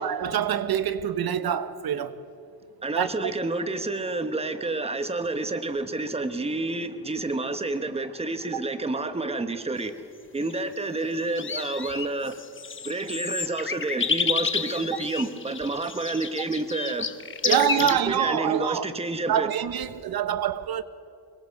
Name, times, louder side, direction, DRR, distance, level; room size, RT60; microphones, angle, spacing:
voice 1, 0.0-2.2 2.9-3.3 17.4-18.9 19.3-20.8, right 9 dB, 70° right, 1.0 m, -26 dB
voice 2, 2.8-9.9 10.3-12.4 12.8-17.1 17.4-19.5, right 2 dB, 15° right, 1.1 m, -29 dB
sound 1, 10.4-10.6 11.2-18.0, left 6 dB, 30° left, 1.0 m, -30 dB
25.0 x 22.0 x 5.4 m
wide cardioid pair, 130°, 38 cm